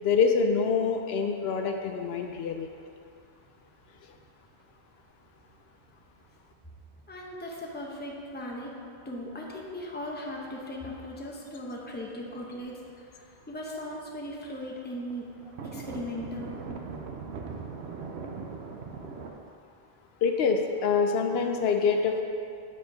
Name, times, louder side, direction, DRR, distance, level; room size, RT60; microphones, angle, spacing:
voice 1, 0.0-2.7 20.2-22.2, left 5 dB, 75° left, 4 dB, 0.8 m, -25 dB
sound 1, 2.2-2.4 2.7-2.8 3.2-3.3 3.9-4.2 4.6-4.7 5.3-6.1 6.6-6.7 7.2-9.2 9.6-10.0 10.5-10.6 11.1-11.2 11.4-13.0 13.3-13.5 13.8-13.9 14.2-14.3 14.5-14.6 15.0-19.3, right 5 dB, 85° right, 0.9 m, -41 dB
voice 2, 7.1-8.7 9.0-15.3 15.6-16.6, left 1 dB, 10° left, -2 dB, 0.7 m, -38 dB
7.7 x 4.4 x 5.1 m, 2.4 s
omnidirectional pair, 1.1 m